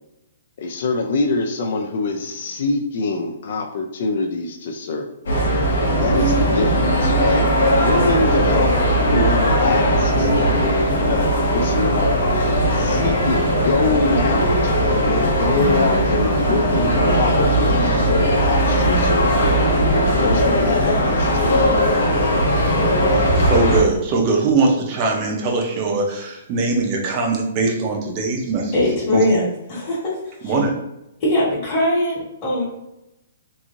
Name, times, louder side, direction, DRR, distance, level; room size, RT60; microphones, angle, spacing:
voice 1, 0.6-5.1 6.0-7.4 7.7-8.7 9.1-10.3 10.9-12.1 12.7-14.7 15.4-19.8 20.2-21.6, left 3 dB, 55° left, 3 dB, 0.4 m, -24 dB
sound 1, 5.3-23.8, equal, 75° left, 1.0 m, -18 dB
voice 2, 23.1-28.7 29.1-29.4 30.4-30.8, right 3 dB, 30° right, 0 dB, 0.5 m, -21 dB
voice 3, 28.7-30.6 31.2-32.7, left 1 dB, 25° left, -11 dB, 1.3 m, -21 dB
3.0 x 2.6 x 2.5 m, 0.91 s
hypercardioid pair, 160°, 0 cm